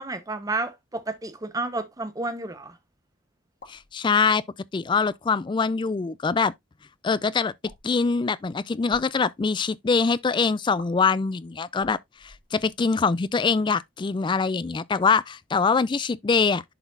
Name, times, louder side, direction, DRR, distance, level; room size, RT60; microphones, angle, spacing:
voice 1, 0.0-2.8, right 2 dB, 20° right, 0.9 m, -31 dB
sound 1, 3.5-3.9 4.9-5.2 6.2-6.5 7.6-8.0 8.8-9.1 10.8-10.9 11.7-12.9, left 3 dB, 55° left, 1.9 m, -48 dB
voice 2, 3.7-4.4 4.7-6.5 7.0-7.5 7.8-12.0 12.2-16.6, left 5 dB, 25° left, 0.3 m, -23 dB
11.0 x 4.0 x 2.5 m
head